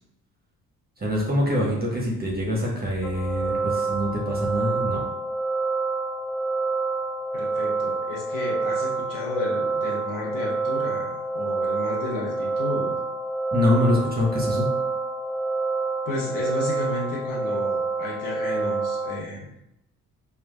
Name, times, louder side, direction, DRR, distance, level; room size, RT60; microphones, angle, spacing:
voice 1, 1.0-5.0 13.5-14.7, left 1 dB, 20° right, -3 dB, 1.0 m, -24 dB
sound 1, 3.0-19.1, right 3 dB, 70° left, 0.7 m, -27 dB
voice 2, 7.3-12.9 16.0-19.5, left 2 dB, 45° left, -5 dB, 1.2 m, -32 dB
4.7 x 2.3 x 2.2 m, 0.82 s
figure-of-eight pair, 45°, 47 cm